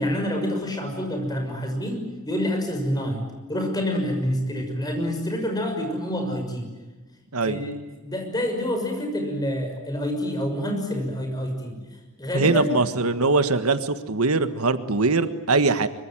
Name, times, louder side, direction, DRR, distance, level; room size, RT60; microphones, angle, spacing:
voice 1, 0.0-3.2 3.5-6.6 7.4-7.7 8.0-11.8 12.2-12.8, equal, 20° left, 3 dB, 6.2 m, -27 dB
voice 2, 12.3-15.9, right 3 dB, 85° right, 11 dB, 1.5 m, -22 dB
25.0 x 24.5 x 9.1 m, 1.2 s
head